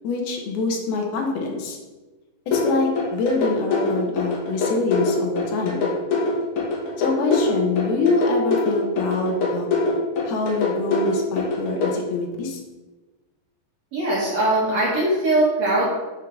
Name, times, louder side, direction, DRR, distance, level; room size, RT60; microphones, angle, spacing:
voice 1, 0.0-1.8 2.5-5.9 7.0-9.7 10.3-12.6, left 3 dB, 90° left, 2 dB, 2.7 m, -25 dB
sound 1, 2.5-11.9, left 4 dB, 65° left, 2.4 m, -23 dB
voice 2, 13.9-15.9, right 2 dB, 60° right, -6 dB, 1.9 m, -21 dB
9.0 x 4.6 x 2.5 m, 1.2 s
omnidirectional pair, 4.4 m